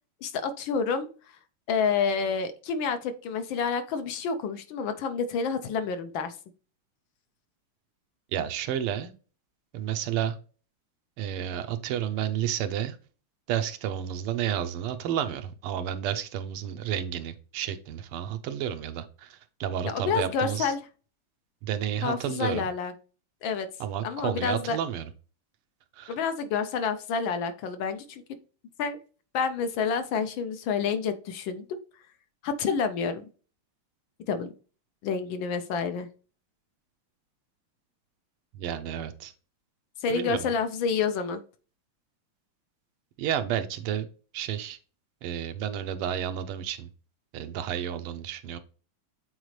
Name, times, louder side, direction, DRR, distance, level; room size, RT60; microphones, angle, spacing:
voice 1, 0.2-1.1 1.7-6.3 19.8-20.8 22.0-22.9 23.4-23.7 24.0-24.8 26.1-28.2 28.8-29.0 29.3-31.8 32.4-33.2 34.3-34.5 35.0-36.1 40.0-41.4, left 5 dB, 70° left, 9 dB, 1.3 m, -28 dB
voice 2, 8.3-9.1 9.7-10.4 11.2-13.0 13.5-20.7 21.6-22.7 23.8-25.1 26.0-26.2 38.5-39.3 40.1-40.5 43.2-44.1 44.3-44.8 45.2-46.9 47.3-48.6, right 10 dB, 85° right, 9 dB, 1.6 m, -31 dB
8.0 x 4.0 x 3.1 m, 0.37 s
omnidirectional pair, 2.4 m